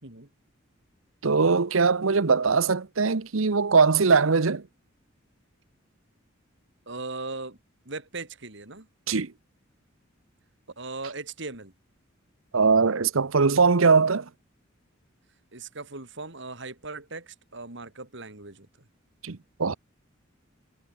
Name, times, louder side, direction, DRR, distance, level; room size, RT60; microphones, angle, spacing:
voice 1, 1.2-4.6 9.1-9.3 12.5-14.2 19.2-19.7, right 4 dB, 80° right, 0.9 m, -21 dB
voice 2, 6.9-7.6 7.9-8.9 10.8-11.7 15.5-18.7, right 3 dB, 60° right, 3.8 m, -38 dB
head